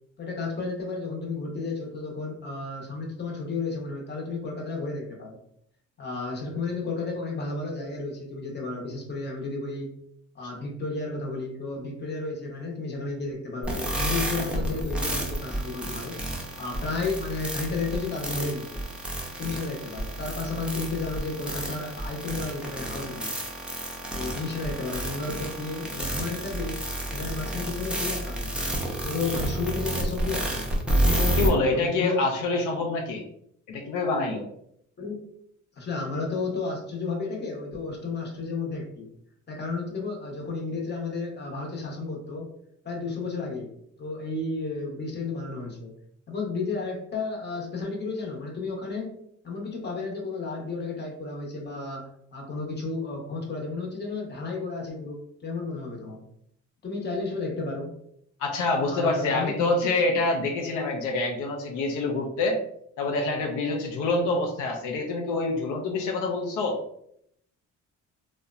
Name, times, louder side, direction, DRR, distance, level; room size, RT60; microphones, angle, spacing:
voice 1, 0.2-5.4 6.0-9.9 10.3-16.2 16.6-18.8 19.4-23.3 24.1-26.8 27.1-28.6 29.0-32.3 35.0-35.2 35.8-39.1 39.5-42.5 42.8-43.7 44.0-45.9 46.3-49.1 49.4-56.2 56.8-57.9 58.8-59.7, left 3 dB, 35° left, -1 dB, 0.8 m, -32 dB
sound 1, 13.6-31.5, right 1 dB, 5° right, 0.5 m, -30 dB
voice 2, 31.4-33.2 33.7-34.5 58.4-62.6 63.0-66.8, left 3 dB, 85° left, 1 dB, 0.5 m, -26 dB
2.8 x 2.1 x 2.4 m, 0.71 s
cardioid pair, 90°, 30 cm